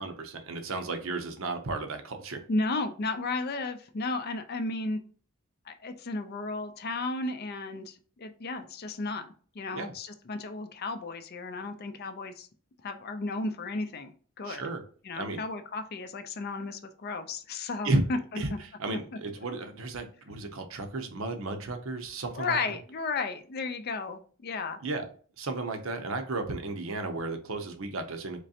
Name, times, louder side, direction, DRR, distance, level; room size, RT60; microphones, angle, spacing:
voice 1, 0.0-2.4 9.7-9.9 14.4-14.8 15.1-15.4 17.8-18.0 18.4-22.8 24.8-25.1 25.4-28.4, right 2 dB, 65° right, 7 dB, 0.7 m, -33 dB
voice 2, 2.5-5.0 5.7-12.5 12.8-14.1 14.4-14.6 15.0-18.2 22.4-24.8, left 3 dB, 45° left, 9 dB, 0.4 m, -34 dB
3.7 x 3.1 x 2.7 m, 0.42 s
head